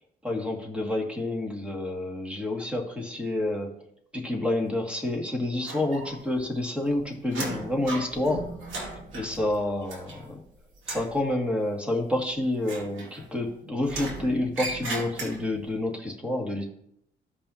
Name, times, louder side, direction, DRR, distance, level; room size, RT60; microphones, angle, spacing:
voice 1, 0.2-3.8 4.1-8.6 9.1-10.4 10.9-16.6, left 1 dB, 5° right, 1 dB, 2.1 m, -29 dB
sound 1, 5.6-6.4 6.7-10.5 10.8-11.2 12.6-13.5 13.9-15.7, right 2 dB, 80° right, 2.4 m, -37 dB
15.0 x 5.4 x 2.8 m, 0.72 s
cardioid pair, 90°, 20 cm